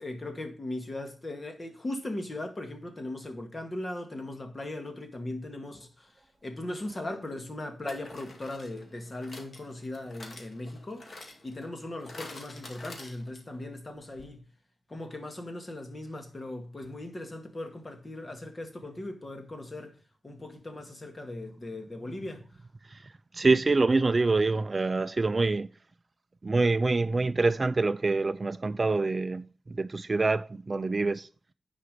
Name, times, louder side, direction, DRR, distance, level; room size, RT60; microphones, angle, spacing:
voice 1, 0.0-6.1 6.4-11.2 11.4-14.4 14.9-20.0 20.2-22.4, left 1 dB, 35° left, 2.0 m, -38 dB
sound 1, 6.6-6.7 7.9-13.6 13.9-14.0 14.2-14.3, left 2 dB, 55° left, 2.1 m, -48 dB
voice 2, 23.3-25.7 26.4-31.3, right 3 dB, 35° right, 0.4 m, -26 dB
9.9 x 5.0 x 5.0 m
wide cardioid pair, 90°, 0 cm